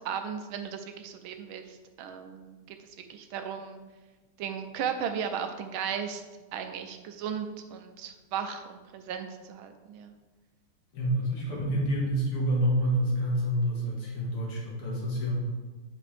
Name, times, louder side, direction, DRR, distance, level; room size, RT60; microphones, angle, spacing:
voice 1, 0.0-2.8 3.1-3.8 4.4-6.2 6.5-10.1, right 7 dB, 75° right, 7 dB, 1.4 m, -36 dB
voice 2, 10.9-15.4, equal, 80° left, -3 dB, 2.6 m, -28 dB
9.7 x 4.9 x 3.3 m, 1.2 s
omnidirectional pair, 2.4 m